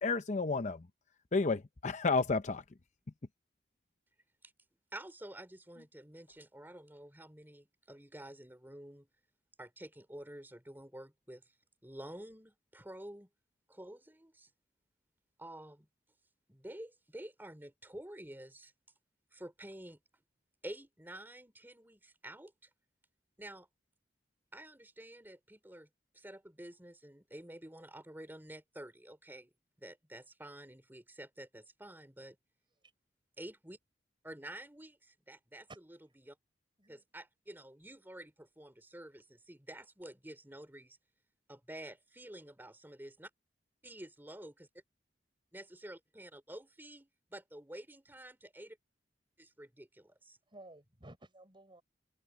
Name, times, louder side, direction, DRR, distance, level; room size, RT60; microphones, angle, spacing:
voice 1, 0.0-0.9 1.3-2.6, left 4 dB, 40° left, 0.7 m, -31 dB
voice 2, 4.9-9.1 9.6-11.4 11.8-13.3 13.7-14.5 15.4-15.9 16.5-18.7 19.3-20.0 20.6-22.5 23.4-23.7 24.5-25.9 26.1-29.5 29.8-32.4 33.4-33.8 34.2-35.7 36.2-36.4 36.9-41.0 41.5-43.3 43.8-44.7 45.5-48.8 49.4-50.4, right 1 dB, 10° right, 3.9 m, -49 dB
voice 3, 50.5-51.8, right 2 dB, 30° right, 5.7 m, -54 dB
head